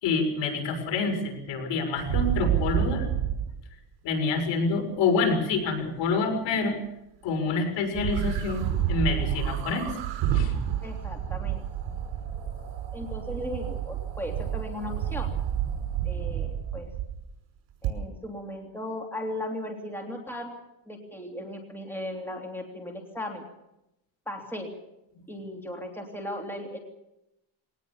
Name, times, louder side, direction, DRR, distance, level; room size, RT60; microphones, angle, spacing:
voice 1, 0.0-3.1 4.0-6.8 7.2-9.9 10.3-10.5, left 4 dB, 65° left, 4 dB, 6.6 m, -27 dB
sound 1, 1.9-3.5 7.9-17.2 17.8-17.9, right 10 dB, 75° right, 5.5 m, -29 dB
voice 2, 10.8-11.7 12.9-15.3 16.0-16.9 17.8-20.5 20.9-23.4 24.3-24.7 25.3-26.8, left 1 dB, 5° left, 1 dB, 3.1 m, -37 dB
22.0 x 19.0 x 7.2 m, 0.87 s
cardioid pair, 150°, 47 cm